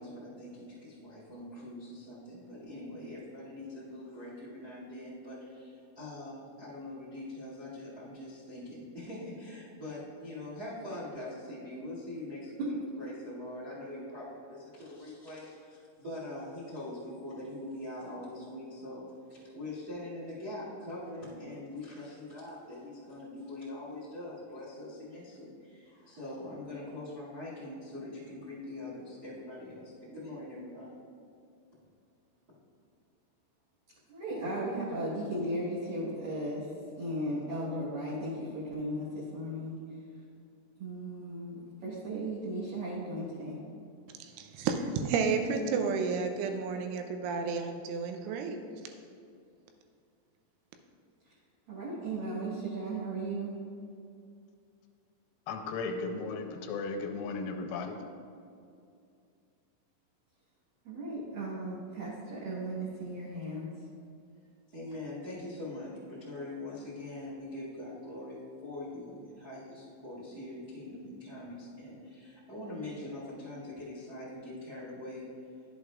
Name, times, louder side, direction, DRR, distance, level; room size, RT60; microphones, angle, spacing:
voice 1, 0.0-19.0 19.3-30.9 64.7-75.2, left 1 dB, 45° right, -9 dB, 1.2 m, -43 dB
voice 2, 34.1-36.7 37.0-40.0 40.8-43.6 51.2-51.3 51.7-53.5 60.8-63.9, right 1 dB, 65° right, -10 dB, 2.4 m, -36 dB
voice 3, 44.2-48.6, right 5 dB, 80° right, 5 dB, 2.9 m, -31 dB
voice 4, 55.5-58.0, left 4 dB, 85° left, 3 dB, 3.2 m, -35 dB
12.0 x 7.8 x 2.4 m, 2.4 s
omnidirectional pair, 5.9 m